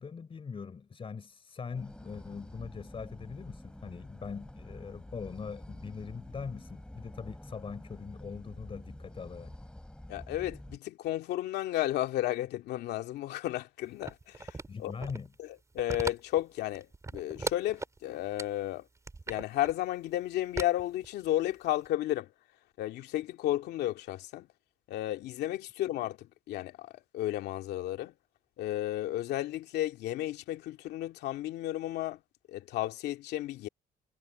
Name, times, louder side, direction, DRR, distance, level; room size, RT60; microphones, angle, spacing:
voice 1, 0.0-9.5 14.7-15.3, left 5 dB, 30° left, 4.1 m, -42 dB
sound 1, 1.7-10.8, left 1 dB, 5° left, 4.2 m, -48 dB
voice 2, 10.1-15.1 15.4-18.9 19.3-22.3 22.8-24.5 24.9-28.1 28.6-32.2 32.5-33.7, left 14 dB, 75° left, 2.4 m, -33 dB
sound 2, 14.0-15.3 15.7-16.4 16.7-18.0 18.4-18.5 19.0-19.7 20.6-21.5 21.8-21.9, right 3 dB, 20° right, 3.6 m, -38 dB
cardioid pair, 110°, 17 cm